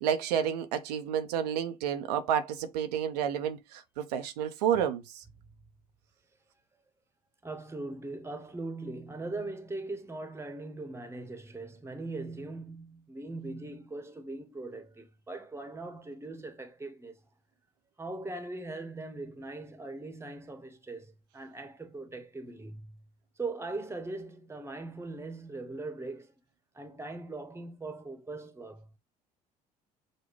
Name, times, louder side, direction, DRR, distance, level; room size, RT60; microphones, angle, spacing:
voice 1, 0.0-5.2, right 9 dB, 80° right, 0.6 m, -30 dB
voice 2, 7.4-17.2 18.0-22.9 23.4-26.3 26.7-28.9, right 2 dB, 15° right, 1.0 m, -40 dB
6.4 x 2.2 x 3.2 m
hypercardioid pair, 60°, 20 cm